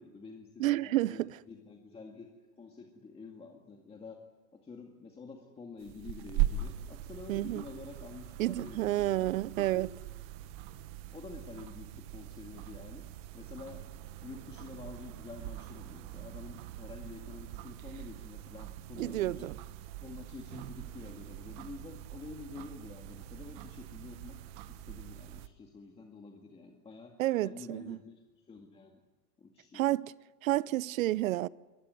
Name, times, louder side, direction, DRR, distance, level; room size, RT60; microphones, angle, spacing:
voice 1, 0.0-4.2 4.5-9.8 11.1-13.1 13.3-13.9 14.2-19.5 20.0-24.4 24.7-27.1 27.4-29.0 29.4-29.8, left 4 dB, 10° left, 2.0 m, -48 dB
voice 2, 0.6-1.4 7.3-7.6 8.4-9.9 19.0-19.6 27.2-28.0 29.7-30.1 30.4-31.5, right 16 dB, 55° right, 0.7 m, -30 dB
sound 1, 5.8-25.5, right 12 dB, 35° right, 1.1 m, -41 dB
22.5 x 19.5 x 9.6 m
supercardioid pair, 150°, 49 cm